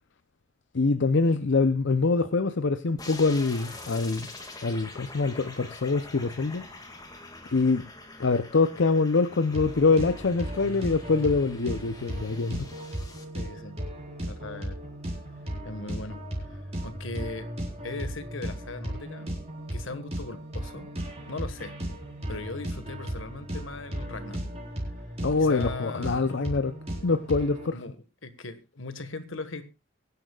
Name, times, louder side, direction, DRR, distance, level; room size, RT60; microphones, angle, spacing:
voice 1, 0.7-4.3 4.6-6.6 7.5-7.9 8.2-12.7 25.2-26.7 27.0-27.8, left 3 dB, 65° left, 0.7 m, -24 dB
sound 1, 3.0-13.2, left 2 dB, 20° left, 2.1 m, -45 dB
sound 2, 9.5-27.7, equal, 35° right, 4.6 m, -36 dB
voice 2, 13.3-13.8 14.2-14.8 15.6-17.5 17.8-19.3 19.7-20.9 21.3-21.8 22.3-24.5 25.4-26.3 27.7-29.7, left 3 dB, 80° left, 1.6 m, -39 dB
23.5 x 10.5 x 2.4 m
head